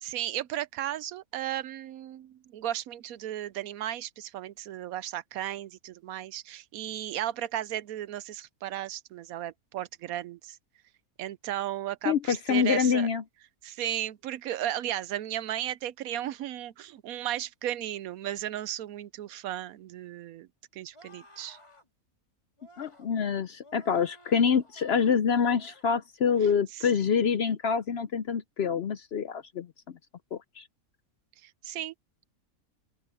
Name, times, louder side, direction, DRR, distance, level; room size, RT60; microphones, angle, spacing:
voice 1, 0.0-10.6 11.2-13.1 13.6-20.5 20.7-21.6 26.7-26.9 31.4-31.9, right 12 dB, 80° right, 1.1 m, -35 dB
voice 2, 12.0-13.2 22.8-29.7 30.3-30.6, left 6 dB, 60° left, 0.7 m, -26 dB
sound 1, 20.9-21.9 22.6-23.1 23.6-25.2 25.5-25.9 26.2-26.7 27.1-27.4, equal, 20° left, 4.1 m, -56 dB
open air
omnidirectional pair, 1.5 m